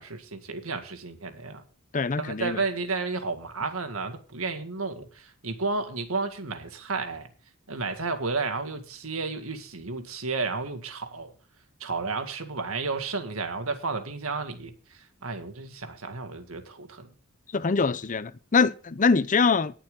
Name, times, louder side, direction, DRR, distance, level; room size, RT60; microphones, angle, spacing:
voice 1, 0.0-1.6 2.2-7.3 7.7-11.3 11.8-17.1, right 4 dB, 90° right, 2.0 m, -32 dB
voice 2, 1.9-2.6 17.5-19.8, left 4 dB, 40° left, 0.6 m, -24 dB
19.0 x 7.0 x 3.8 m
head